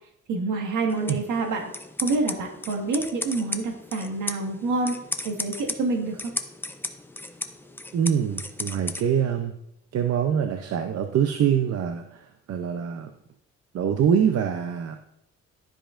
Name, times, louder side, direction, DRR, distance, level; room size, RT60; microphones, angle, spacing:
voice 1, 0.3-1.7 2.0-5.0 5.2-6.3, right 3 dB, 80° right, 1 dB, 1.8 m, -27 dB
sound 1, 0.9-9.0, left 2 dB, 5° left, 0.5 m, -36 dB
voice 2, 7.9-9.5 9.9-13.1 13.7-15.0, right 8 dB, 55° right, 6 dB, 0.6 m, -24 dB
12.5 x 5.0 x 2.5 m, 0.79 s
cardioid pair, 90°, 30 cm